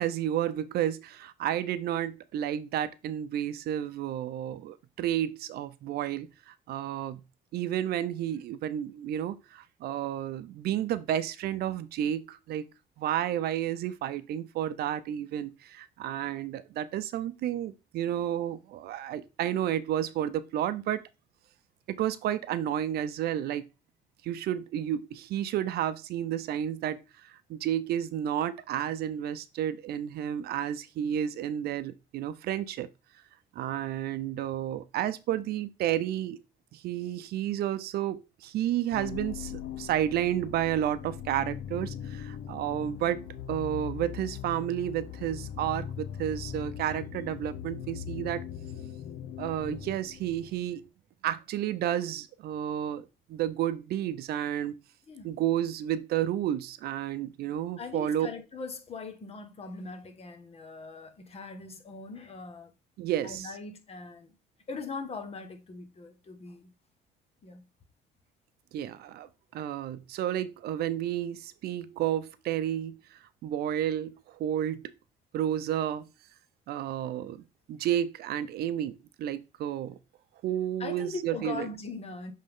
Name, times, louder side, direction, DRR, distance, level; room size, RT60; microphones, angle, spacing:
voice 1, 0.0-7.2 7.5-12.6 13.0-21.0 21.9-23.6 24.2-32.9 33.5-36.4 36.7-43.2 43.5-48.4 49.4-50.8 51.2-54.7 55.2-58.3 63.0-63.5 68.7-74.9 75.3-76.1 76.7-77.4 77.7-80.0 80.4-81.7, right 11 dB, 70° right, 0.6 m, -31 dB
sound 1, 38.9-50.8, left 9 dB, 75° left, 0.7 m, -40 dB
voice 2, 57.8-62.7 63.2-64.3 64.7-66.7 67.4-67.6 80.8-82.3, left 4 dB, 35° left, 1.3 m, -40 dB
7.6 x 3.6 x 3.6 m
cardioid pair, 110°, 17 cm